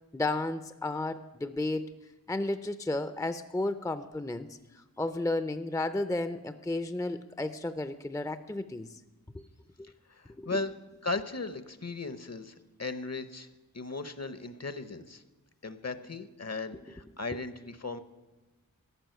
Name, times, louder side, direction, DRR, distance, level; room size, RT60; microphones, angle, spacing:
voice 1, 0.1-1.9 2.3-4.6 5.0-8.9 9.3-9.4 9.8-9.9 10.4-10.6, left 2 dB, 10° left, 11 dB, 0.5 m, -33 dB
voice 2, 10.1-10.7 11.0-13.5 13.7-15.2 15.6-18.0, left 3 dB, 45° left, 12 dB, 0.9 m, -37 dB
13.5 x 6.1 x 9.2 m, 1.1 s
wide cardioid pair, 40°, 36 cm